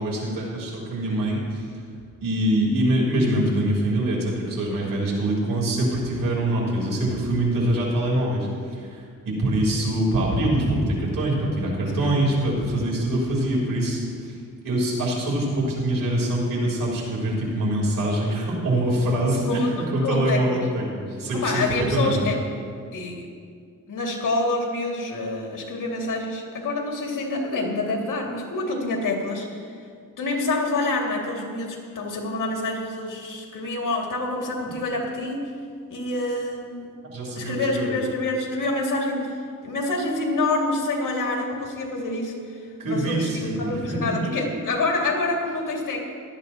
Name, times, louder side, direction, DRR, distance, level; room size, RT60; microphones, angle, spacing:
voice 1, 0.0-1.7 2.2-14.4 14.6-19.7 19.9-21.6 21.9-22.2 37.0-38.0 42.8-44.3, right 1 dB, 85° right, -3 dB, 3.6 m, -24 dB
voice 2, 19.4-20.7 21.3-22.4 22.9-23.3 23.9-29.7 30.2-35.4 35.9-36.9 37.4-46.0, left 2 dB, 75° left, 0 dB, 2.2 m, -27 dB
17.0 x 12.0 x 2.9 m, 2.2 s
cardioid pair, 90°, 32 cm